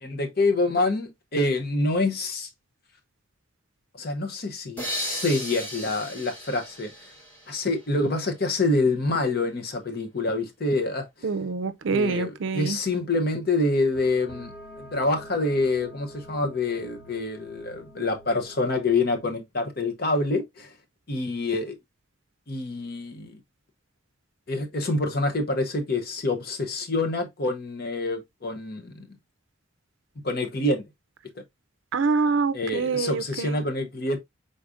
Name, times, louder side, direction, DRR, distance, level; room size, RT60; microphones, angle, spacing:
voice 1, 0.0-2.5 4.0-6.9 7.5-11.3 11.9-14.5 14.8-20.7 21.1-21.8 22.5-23.4 24.5-29.1 30.2-30.8 32.5-34.2, left 2 dB, 45° left, 0.8 m, -26 dB
sound 1, 4.8-8.3, equal, 10° left, 1.0 m, -36 dB
voice 2, 11.2-12.8 31.9-33.6, right 4 dB, 65° right, 0.5 m, -26 dB
sound 2, 12.9-19.3, right 1 dB, 65° left, 1.5 m, -47 dB
4.9 x 3.9 x 2.5 m
head